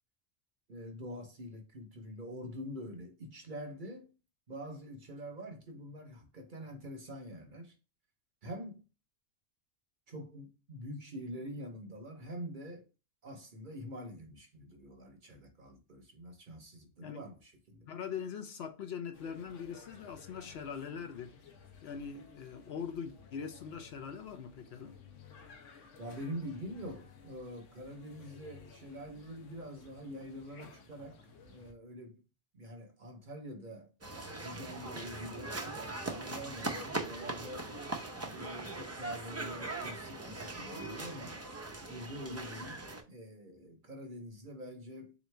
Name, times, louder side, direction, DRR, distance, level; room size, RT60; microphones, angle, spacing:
voice 1, 0.7-4.1 4.5-7.7 8.4-8.8 10.1-12.9 13.2-17.9 26.0-32.2 32.5-33.9 34.4-37.7 38.3-41.4 41.9-45.1, equal, 50° right, 0.8 m, -45 dB
voice 2, 17.9-21.3 21.8-24.9, left 7 dB, 65° left, 0.8 m, -42 dB
sound 1, 19.1-31.7, left 5 dB, 80° left, 1.0 m, -56 dB
sound 2, 34.0-43.0, right 2 dB, 25° right, 0.3 m, -40 dB
3.8 x 3.0 x 3.2 m
omnidirectional pair, 1.3 m